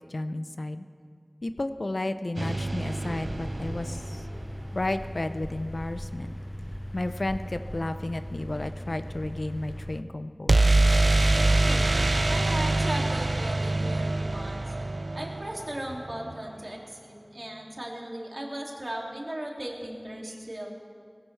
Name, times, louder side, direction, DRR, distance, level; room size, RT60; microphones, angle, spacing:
voice 1, 0.1-0.9 1.4-4.3 4.7-6.4 6.9-10.9, left 2 dB, 80° left, 10 dB, 0.6 m, -32 dB
sound 1, 2.4-4.4 10.5-16.3, right 2 dB, 90° right, 0.3 m, -25 dB
sound 2, 3.2-10.0, equal, 10° left, 0.6 m, -38 dB
voice 2, 11.6-14.7 15.1-20.7, right 1 dB, 60° right, -1 dB, 2.5 m, -37 dB
19.0 x 17.0 x 3.3 m, 2.1 s
wide cardioid pair, 40°, 0 cm